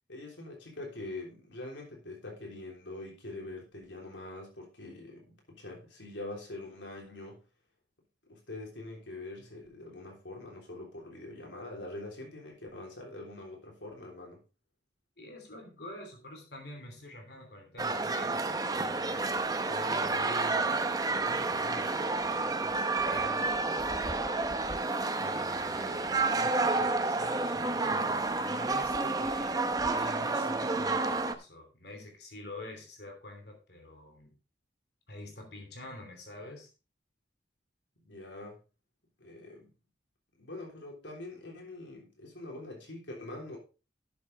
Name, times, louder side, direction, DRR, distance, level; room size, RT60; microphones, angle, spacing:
voice 1, 0.1-7.4 8.2-14.4 38.0-38.6 39.2-39.7 40.4-43.6, left 2 dB, 85° left, 0 dB, 3.6 m, -44 dB
voice 2, 15.2-19.3 19.7-20.7 21.1-23.5 25.2-29.6 29.9-34.4 35.1-36.7, left 1 dB, 60° left, 3 dB, 3.0 m, -46 dB
sound 1, 17.8-31.3, right 3 dB, 20° right, 0.7 m, -30 dB
12.0 x 8.0 x 3.4 m, 0.31 s
head